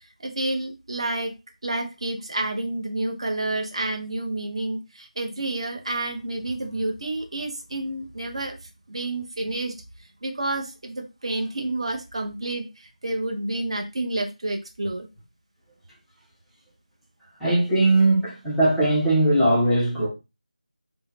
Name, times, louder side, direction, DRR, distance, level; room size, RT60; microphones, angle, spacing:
voice 1, 0.0-1.3 1.6-8.6 8.9-9.7 10.2-15.1, right 2 dB, 40° right, 0.8 m, -29 dB
voice 2, 17.4-20.1, right 1 dB, ahead, 0.5 m, -20 dB
3.7 x 2.1 x 4.0 m
figure-of-eight pair, 170°, 4 cm